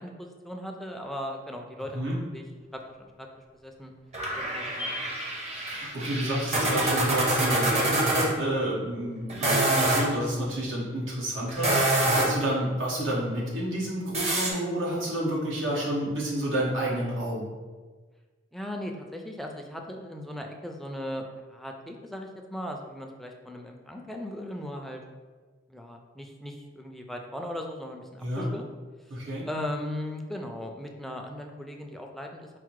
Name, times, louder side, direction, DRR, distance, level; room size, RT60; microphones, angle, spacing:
voice 1, 0.0-2.5 2.7-3.3 3.6-3.9 4.3-5.0 12.6-12.8 18.5-25.0 25.7-28.7 29.5-32.5, left 1 dB, ahead, 2 dB, 0.3 m, -38 dB
sound 1, 4.1-8.3 9.3-10.1 11.5-12.5 14.1-14.5, right 1 dB, 35° right, 0.8 m, -26 dB
voice 2, 5.7-17.5 28.2-28.5 29.1-29.5, right 1 dB, 85° right, -5 dB, 1.2 m, -30 dB
4.6 x 2.1 x 4.6 m, 1.4 s
head